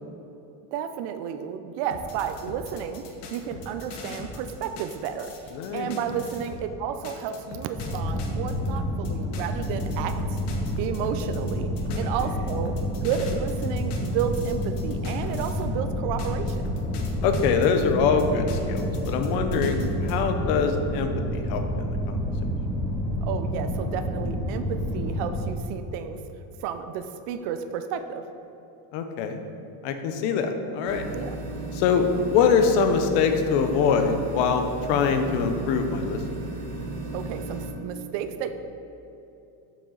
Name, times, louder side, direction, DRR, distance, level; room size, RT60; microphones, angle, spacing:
voice 1, 0.7-3.0 3.3-10.4 10.8-12.8 13.0-16.7 19.6-19.7 23.2-26.2 26.6-28.2 31.1-31.4 37.1-38.5, right 8 dB, 65° right, 8 dB, 0.6 m, -32 dB
sound 1, 1.9-6.7 7.0-15.8 16.2-20.2, left 3 dB, 65° left, 1.1 m, -41 dB
voice 2, 5.5-5.9 11.9-12.0 17.2-22.2 28.9-29.4 29.8-31.1 31.7-36.2, left 6 dB, 80° left, 7 dB, 0.9 m, -24 dB
sound 2, 7.8-25.4, equal, 10° left, 1.3 m, -29 dB
sound 3, 30.9-37.7, right 2 dB, 45° right, 1.1 m, -34 dB
7.0 x 6.2 x 3.9 m, 3.0 s
cardioid pair, 130°, 45 cm